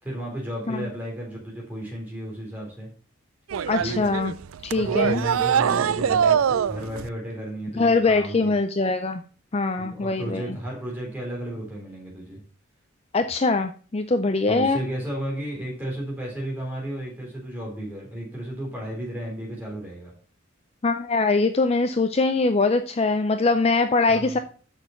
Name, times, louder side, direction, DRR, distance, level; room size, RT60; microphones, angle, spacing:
voice 1, 0.0-2.9 3.8-4.1 4.7-8.5 9.8-12.4 14.5-20.1 24.1-24.4, right 1 dB, 10° right, -3 dB, 3.8 m, -33 dB
sound 1, 3.5-7.1, right 8 dB, 90° right, 0.4 m, -23 dB
voice 2, 3.7-4.3 4.6-5.2 7.8-9.2 9.5-10.4 13.1-14.8 20.8-24.4, left 3 dB, 30° left, 8 dB, 0.4 m, -22 dB
6.5 x 6.4 x 5.8 m, 0.42 s
head